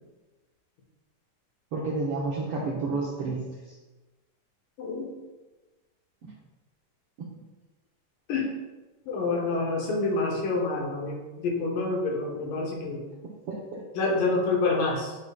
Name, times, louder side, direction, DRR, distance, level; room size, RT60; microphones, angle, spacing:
voice 1, 1.7-3.4 7.2-7.3 13.5-13.8, right 3 dB, 80° right, -3 dB, 1.3 m, -30 dB
voice 2, 4.8-5.1 8.3-8.5 9.1-13.0 13.9-15.2, left 3 dB, 90° left, -1 dB, 2.8 m, -27 dB
10.5 x 4.2 x 2.3 m, 1.2 s
omnidirectional pair, 3.7 m